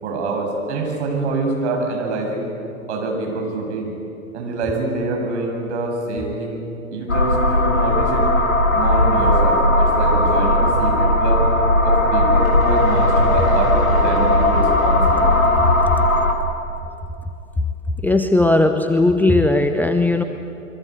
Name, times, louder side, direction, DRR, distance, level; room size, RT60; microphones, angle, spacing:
voice 1, 0.0-2.5 2.9-3.9 4.3-6.6 6.9-8.3 8.7-11.4 11.8-15.3, right 3 dB, 55° right, 1 dB, 7.6 m, -25 dB
sound 1, 7.1-16.3, left 1 dB, 80° left, 3.6 m, -17 dB
voice 2, 18.0-20.2, left 2 dB, 5° left, 7 dB, 0.9 m, -17 dB
27.5 x 23.0 x 8.4 m, 2.8 s
figure-of-eight pair, 105°, 41 cm